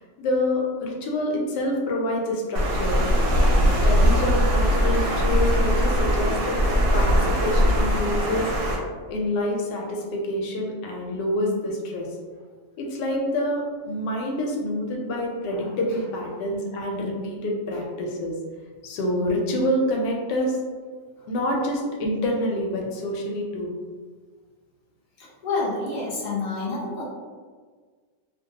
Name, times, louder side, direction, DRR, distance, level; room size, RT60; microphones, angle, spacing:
voice 1, 0.0-3.0 3.4-6.6 6.9-8.7 9.1-12.1 12.8-18.4 18.8-20.6 21.3-23.7, left 1 dB, 90° left, 0 dB, 1.2 m, -27 dB
Water, 2.5-8.7, equal, 65° right, 0.9 m, -21 dB
voice 2, 25.2-27.0, left 3 dB, 45° left, -6 dB, 0.6 m, -29 dB
2.7 x 2.2 x 2.7 m, 1.5 s
omnidirectional pair, 1.8 m